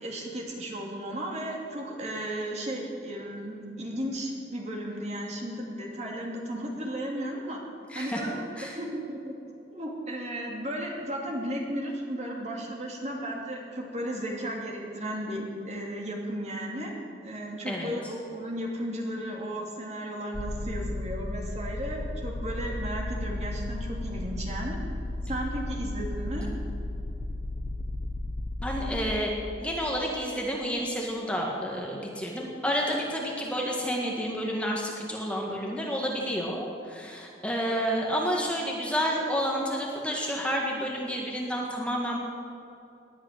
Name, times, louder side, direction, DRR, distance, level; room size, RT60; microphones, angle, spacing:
voice 1, 0.0-7.6 7.9-9.3 9.7-16.9 17.2-24.8 25.3-26.5, right 1 dB, 40° right, -1 dB, 2.6 m, -34 dB
voice 2, 7.9-8.8 17.7-17.9 28.6-29.3 29.6-42.2, equal, 5° left, -1 dB, 1.7 m, -30 dB
sound 1, 20.3-29.2, left 1 dB, 40° left, 0.7 m, -34 dB
18.5 x 11.0 x 6.6 m, 2.8 s
head